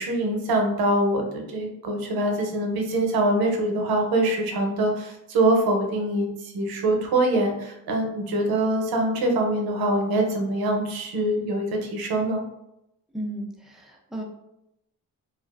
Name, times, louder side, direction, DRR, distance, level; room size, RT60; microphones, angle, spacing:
voice 1, 0.0-12.4, right 1 dB, 85° right, 2 dB, 0.6 m, -24 dB
voice 2, 13.1-14.2, right 1 dB, ahead, -1 dB, 0.3 m, -34 dB
2.3 x 2.3 x 2.3 m, 0.83 s
cardioid pair, 125°, 35 cm